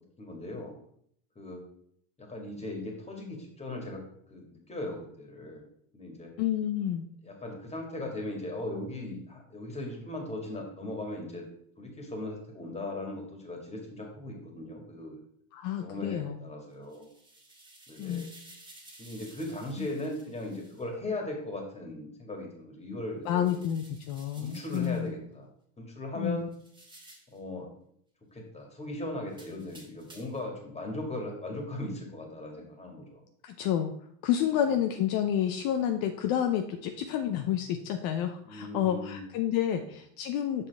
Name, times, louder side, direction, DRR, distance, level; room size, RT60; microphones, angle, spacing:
voice 1, 0.2-0.7 1.4-1.6 2.2-4.0 4.3-5.6 5.9-6.3 7.2-11.4 11.8-15.2 15.8-17.1 17.9-18.3 19.0-23.6 24.4-25.5 25.8-26.5 27.3-27.7 28.3-33.2 38.4-39.3 39.7-39.8, left 1 dB, 15° left, 1 dB, 1.9 m, -38 dB
voice 2, 6.4-7.1 15.5-16.4 18.0-18.3 19.8-19.9 23.3-25.1 26.2-26.5 33.4-33.9 34.2-40.7, left 10 dB, 55° left, 6 dB, 0.7 m, -29 dB
sound 1, 16.7-20.9 23.2-25.1 26.5-27.4 29.3-30.5, right 2 dB, 10° right, 1.7 m, -54 dB
6.7 x 5.4 x 3.5 m, 0.67 s
supercardioid pair, 110°, 43 cm